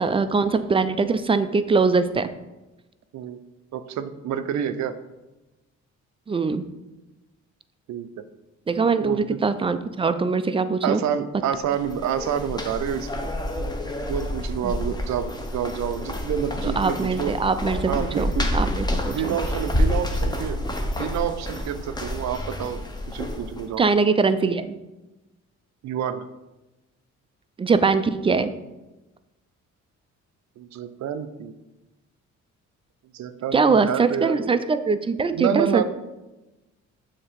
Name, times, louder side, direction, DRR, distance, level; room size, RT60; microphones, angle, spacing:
voice 1, 0.0-2.3 6.3-6.7 8.7-11.0 14.6-14.7 16.6-19.4 23.8-24.8 27.6-28.5 33.5-35.8, right 4 dB, 20° right, 11 dB, 0.3 m, -22 dB
voice 2, 3.7-5.0 7.9-8.2 9.0-9.4 10.8-13.3 14.1-17.3 17.9-18.5 19.1-20.7 21.0-22.8 23.1-23.8 25.8-26.3 30.6-31.5 33.1-34.5 35.3-35.8, right 8 dB, 70° right, 11 dB, 0.5 m, -28 dB
sound 1, 11.6-23.7, left 1 dB, 15° left, 0.8 m, -28 dB
7.0 x 2.9 x 5.1 m, 1.0 s
cardioid pair, 90°, 30 cm